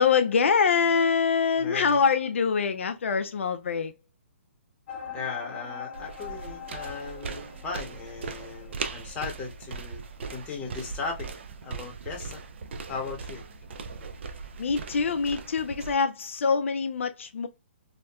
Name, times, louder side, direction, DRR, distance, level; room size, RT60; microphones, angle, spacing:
voice 1, 0.0-3.9 14.6-17.5, left 5 dB, 75° left, 0.3 m, -24 dB
sound 1, 4.9-10.4, left 7 dB, 55° left, 1.0 m, -43 dB
voice 2, 5.1-10.0 10.3-11.3 11.6-12.4 12.9-13.4, left 4 dB, 20° left, 0.9 m, -37 dB
sound 2, 5.9-15.9, right 4 dB, 65° right, 0.4 m, -39 dB
2.7 x 2.2 x 2.2 m
hypercardioid pair, 145°, 7 cm